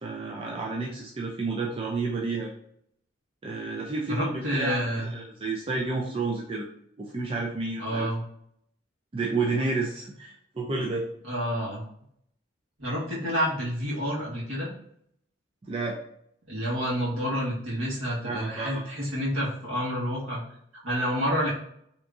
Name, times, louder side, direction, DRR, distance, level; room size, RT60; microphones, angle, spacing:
voice 1, 0.0-2.5 3.4-4.8 5.0-6.7 7.0-8.1 9.1-11.1 15.6-16.0 18.2-18.8, right 3 dB, 25° right, -2 dB, 0.4 m, -30 dB
voice 2, 4.1-5.1 7.8-8.2 11.2-11.8 12.8-14.7 16.5-20.4 20.8-21.5, equal, 75° right, -6 dB, 1.4 m, -29 dB
3.3 x 2.9 x 2.5 m, 0.70 s
head